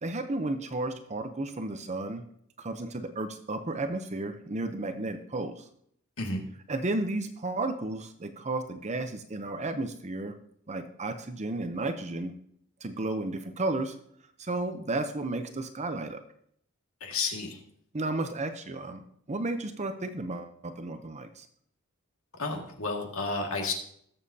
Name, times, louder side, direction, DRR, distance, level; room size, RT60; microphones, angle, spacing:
voice 1, 0.0-2.2 2.6-5.6 6.7-10.3 10.7-12.3 12.8-13.9 14.4-16.2 17.9-19.0 19.3-21.5, right 2 dB, 30° right, 8 dB, 0.7 m, -33 dB
voice 2, 17.0-17.6 22.4-23.7, left 3 dB, 70° left, 2 dB, 2.0 m, -31 dB
19.0 x 7.3 x 2.8 m, 0.67 s
head